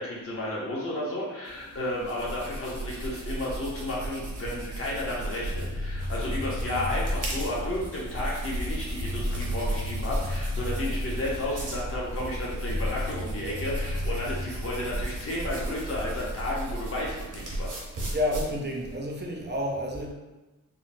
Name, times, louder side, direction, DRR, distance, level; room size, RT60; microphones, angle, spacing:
voice 1, 0.0-17.8, left 1 dB, 45° left, -5 dB, 0.7 m, -32 dB
sound 1, 1.5-18.9, right 1 dB, 70° right, 0.7 m, -35 dB
sound 2, 5.5-16.1, left 1 dB, 80° left, 0.8 m, -35 dB
voice 2, 18.1-20.1, left 1 dB, 35° right, 0 dB, 0.4 m, -30 dB
3.7 x 2.0 x 2.5 m, 1.1 s
wide cardioid pair, 125°, 32 cm